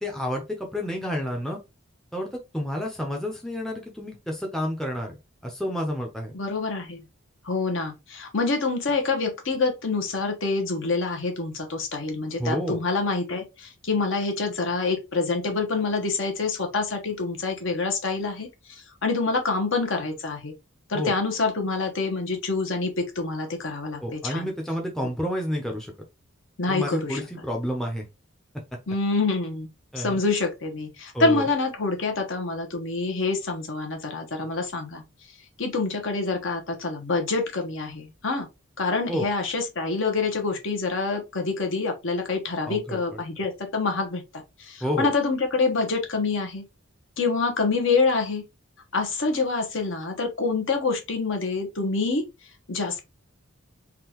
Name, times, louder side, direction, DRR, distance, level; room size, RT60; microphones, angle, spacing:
voice 1, 0.0-1.6 2.1-5.2 5.4-6.3 12.4-12.8 20.9-21.1 24.0-25.9 26.7-28.1 29.9-30.2 31.1-31.5 39.1-39.3 42.7-43.2 44.8-45.1, equal, ahead, 0.6 m, -30 dB
voice 2, 6.3-7.1 7.4-20.5 20.9-24.5 26.6-27.2 28.9-29.7 30.0-35.0 35.6-38.5 38.8-44.2 44.6-46.6 47.2-48.4 48.9-52.2 52.7-53.0, left 3 dB, 60° left, 1.0 m, -26 dB
3.7 x 2.4 x 2.9 m
head